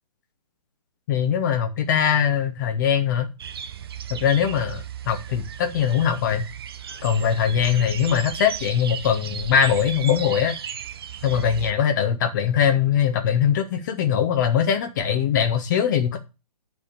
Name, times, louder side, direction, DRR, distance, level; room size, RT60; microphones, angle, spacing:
voice 1, 1.1-3.3 4.1-6.4 7.0-10.5 11.2-16.2, left 8 dB, 30° left, 0.9 m, -21 dB
sound 1, 3.4-11.7, right 8 dB, 40° right, 0.5 m, -35 dB
9.8 x 3.6 x 6.7 m
figure-of-eight pair, 135°, 20 cm